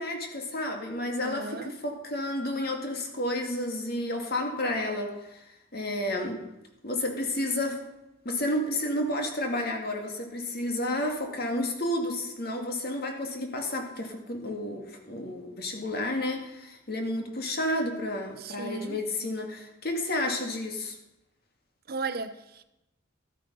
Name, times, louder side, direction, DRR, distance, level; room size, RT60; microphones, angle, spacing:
voice 1, 0.0-5.4 5.7-6.4 6.8-7.9 8.3-21.0, left 1 dB, 50° left, 2.0 m, -31 dB
voice 2, 1.2-1.7 18.4-19.0 21.9-22.6, right 3 dB, 50° right, 0.8 m, -35 dB
13.5 x 8.5 x 5.5 m
head